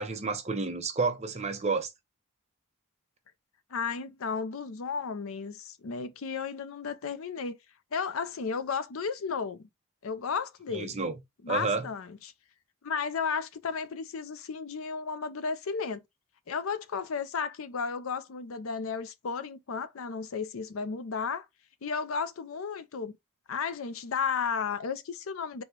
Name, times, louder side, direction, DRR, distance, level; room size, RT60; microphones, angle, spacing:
voice 1, 0.0-1.9 10.7-11.1 11.5-11.9, right 4 dB, 30° right, 0.7 m, -30 dB
voice 2, 3.7-7.6 7.9-9.7 10.0-11.0 11.4-12.3 12.8-16.0 16.5-21.5 21.8-23.2 23.5-25.6, left 5 dB, 70° left, 0.5 m, -33 dB
4.1 x 2.2 x 4.5 m
head